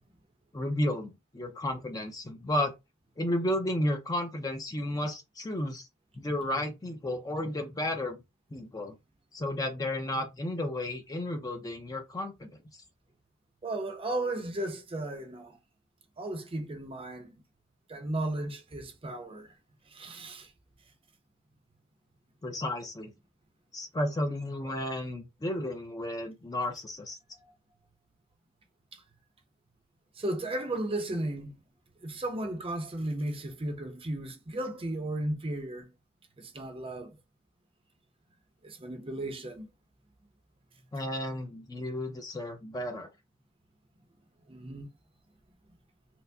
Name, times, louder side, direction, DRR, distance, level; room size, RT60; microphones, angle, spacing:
voice 1, 0.5-2.7 3.2-5.9 6.2-8.2 8.5-9.0 9.3-12.6 22.4-23.1 23.7-27.2 40.9-43.1, left 1 dB, 15° left, 0.5 m, -33 dB
voice 2, 13.6-15.6 16.2-17.3 17.9-19.5 19.9-20.5 27.4-27.5 28.9-29.0 30.2-31.6 32.0-35.9 36.4-37.2 38.6-39.7 44.5-44.9, right 1 dB, 25° right, 0.6 m, -35 dB
4.4 x 2.1 x 2.6 m
head